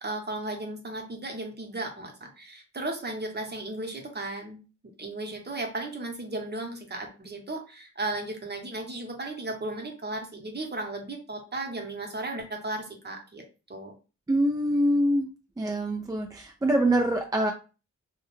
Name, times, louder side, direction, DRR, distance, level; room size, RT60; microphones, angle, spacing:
voice 1, 0.0-4.6 5.0-13.4 13.7-13.9, right 2 dB, 35° right, 2 dB, 0.8 m, -35 dB
voice 2, 14.3-15.3 15.6-17.5, right 1 dB, 15° right, 2 dB, 0.3 m, -24 dB
2.3 x 2.1 x 3.0 m, 0.33 s
cardioid pair, 70°, 30 cm